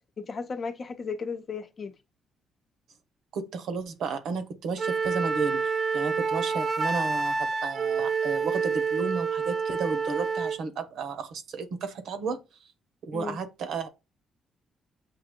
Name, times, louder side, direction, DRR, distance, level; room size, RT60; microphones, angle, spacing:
voice 1, 0.2-1.9 13.1-13.4, left 5 dB, 45° left, 0.7 m, -35 dB
voice 2, 3.3-12.4 13.0-13.9, right 5 dB, 75° right, 0.8 m, -33 dB
Wind instrument woodwind instrument, 4.8-10.6, right 5 dB, 40° right, 0.5 m, -28 dB
7.7 x 2.8 x 2.2 m
cardioid pair, 90°, 0 cm